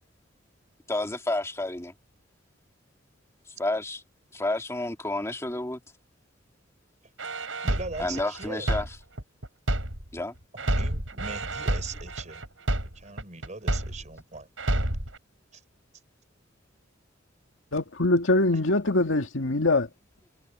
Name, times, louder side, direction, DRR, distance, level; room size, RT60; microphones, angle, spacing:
voice 1, 0.9-1.9 3.6-4.0 4.3-5.8 8.0-8.9 10.1-10.3, left 2 dB, 15° left, 2.5 m, -30 dB
sound 1, 7.2-10.2 10.6-14.2 14.6-15.2, right 1 dB, 85° right, 6.9 m, -29 dB
voice 2, 7.6-8.7 10.5-12.5 12.9-14.5 15.5-15.6, right 3 dB, 40° right, 5.1 m, -40 dB
voice 3, 17.7-19.9, left 2 dB, 85° left, 2.0 m, -23 dB
head